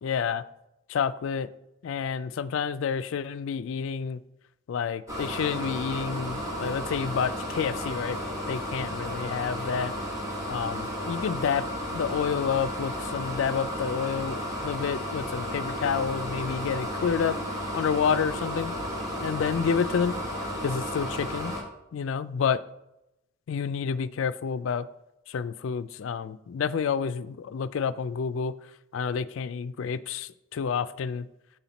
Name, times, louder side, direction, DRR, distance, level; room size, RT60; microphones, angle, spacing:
voice 1, 0.0-0.4 0.9-1.5 1.8-4.2 4.7-8.2 8.5-9.9 10.5-11.7 11.9-17.4 17.7-18.7 19.2-20.2 20.6-21.5 21.9-22.6 23.5-24.9 25.3-28.5 28.9-31.3, left 6 dB, 70° left, 13 dB, 0.3 m, -29 dB
sound 1, 5.1-21.6, equal, 15° right, 1.3 m, -33 dB
6.8 x 5.8 x 4.0 m, 0.87 s
head